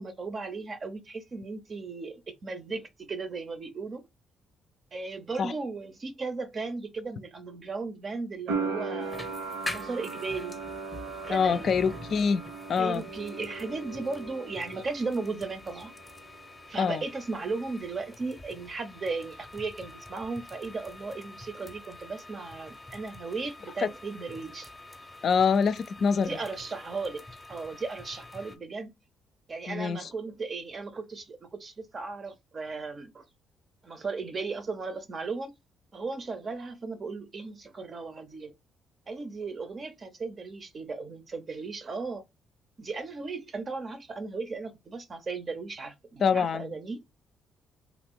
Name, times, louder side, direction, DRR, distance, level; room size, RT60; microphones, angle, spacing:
voice 1, 0.0-4.0 4.9-9.3 9.7-10.6 11.2-11.7 12.8-15.9 16.7-24.7 26.1-28.9 29.5-33.2 33.8-35.5 35.9-38.5 39.1-42.2 42.8-47.0, right 4 dB, 40° right, 0.5 m, -36 dB
sound 1, 8.5-15.3 15.5-16.4, right 4 dB, 90° right, 0.8 m, -38 dB
sound 2, 9.0-28.6, left 2 dB, 20° left, 0.6 m, -46 dB
voice 2, 11.3-12.4 12.7-13.0 16.8-17.0 23.8-23.9 25.2-26.4 29.7-30.1 46.2-46.7, left 6 dB, 55° left, 0.3 m, -25 dB
2.9 x 2.5 x 3.5 m
cardioid pair, 90°, 0 cm